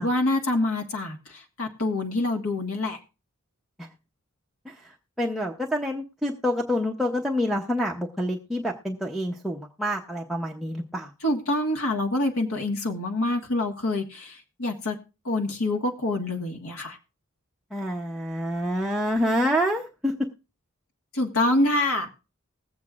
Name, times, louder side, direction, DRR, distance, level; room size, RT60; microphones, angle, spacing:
voice 1, 0.0-3.0 11.2-15.0 15.2-17.0 21.1-22.1, left 2 dB, 90° left, 2 dB, 1.5 m, -26 dB
voice 2, 4.6-11.1 17.7-20.1, equal, ahead, -2 dB, 0.7 m, -27 dB
20.5 x 8.0 x 2.4 m, 0.31 s
head